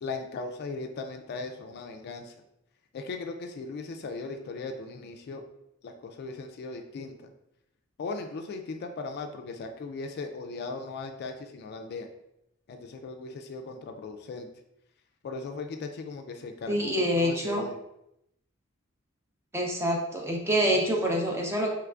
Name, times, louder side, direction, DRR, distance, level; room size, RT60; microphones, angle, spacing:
voice 1, 0.0-2.3 2.9-5.4 5.8-7.3 8.0-12.1 12.7-14.5 15.2-17.8, left 3 dB, 50° left, 5 dB, 0.3 m, -38 dB
voice 2, 16.7-17.6 19.5-21.7, equal, 10° right, 0 dB, 0.5 m, -26 dB
3.4 x 3.1 x 2.4 m, 0.81 s
head